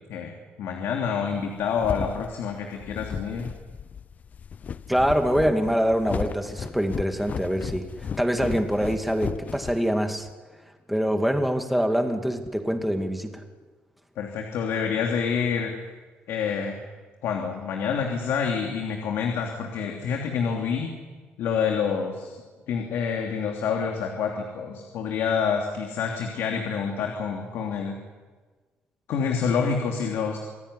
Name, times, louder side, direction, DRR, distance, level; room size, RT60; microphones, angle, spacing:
voice 1, 0.6-3.5 14.2-15.7 16.3-16.8 17.2-20.9 21.4-22.4 22.7-28.0 29.1-30.4, left 6 dB, 80° left, 2 dB, 3.0 m, -27 dB
sound 1, 1.4-10.3, left 7 dB, 40° left, 0.8 m, -35 dB
voice 2, 4.9-7.9 8.2-10.3 10.9-13.4, equal, ahead, 5 dB, 2.4 m, -24 dB
27.0 x 16.5 x 9.9 m, 1.4 s
cardioid pair, 125°, 4 cm